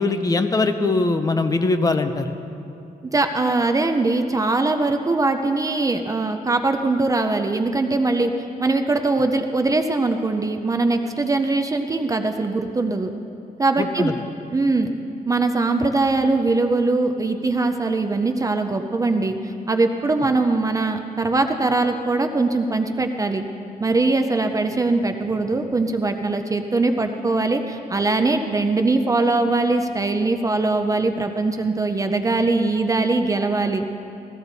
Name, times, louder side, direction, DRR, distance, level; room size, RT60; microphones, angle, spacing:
voice 1, 0.0-2.4 13.8-14.1, left 3 dB, 20° left, 7 dB, 0.6 m, -21 dB
voice 2, 3.1-13.1 13.6-14.1 14.5-14.9 15.3-23.4 23.8-33.9, right 3 dB, 20° right, 6 dB, 0.5 m, -21 dB
16.0 x 15.0 x 4.0 m, 2.6 s
wide cardioid pair, 175°, 16 cm